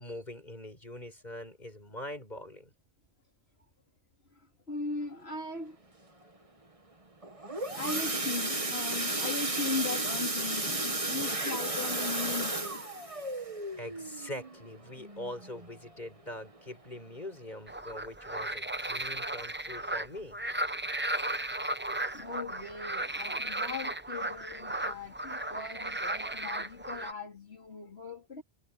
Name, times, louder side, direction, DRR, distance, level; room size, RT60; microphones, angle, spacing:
voice 1, 0.0-2.7 13.4-13.5 13.7-20.4, left 1 dB, 40° left, 7.2 m, -43 dB
voice 2, 4.4-5.8 7.7-12.8 22.1-28.4, left 4 dB, 70° left, 3.4 m, -39 dB
sound 1, 7.2-15.9 16.3-16.6 16.9-17.0 17.4-17.5, right 2 dB, 30° right, 1.9 m, -33 dB
sound 2, 17.7-27.1, right 1 dB, 10° right, 0.8 m, -35 dB
omnidirectional pair, 1.1 m